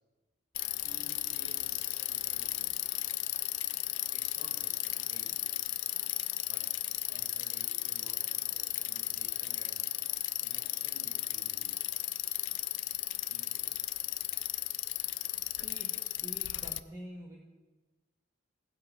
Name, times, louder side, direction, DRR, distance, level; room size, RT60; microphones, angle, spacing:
Bicycle, 0.5-16.8, left 16 dB, 80° left, 0.4 m, -35 dB
voice 1, 0.8-2.8 4.1-5.4 6.4-6.7 7.1-9.9 10.4-11.7 13.3-13.7, right 1 dB, 40° right, -3 dB, 3.8 m, -56 dB
voice 2, 15.5-17.4, equal, 20° right, -2 dB, 1.1 m, -48 dB
16.0 x 10.5 x 3.0 m, 1.2 s
head